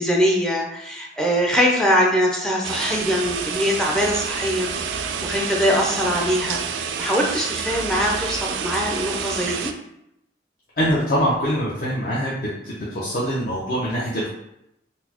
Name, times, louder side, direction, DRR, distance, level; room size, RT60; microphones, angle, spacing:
voice 1, 0.0-9.7, equal, 5° left, -2 dB, 0.4 m, -22 dB
sound 1, 2.6-9.7, right 6 dB, 80° right, 0.3 m, -28 dB
voice 2, 10.8-12.4 12.6-14.3, equal, 50° left, -7 dB, 0.6 m, -23 dB
4.0 x 2.0 x 2.8 m, 0.81 s
head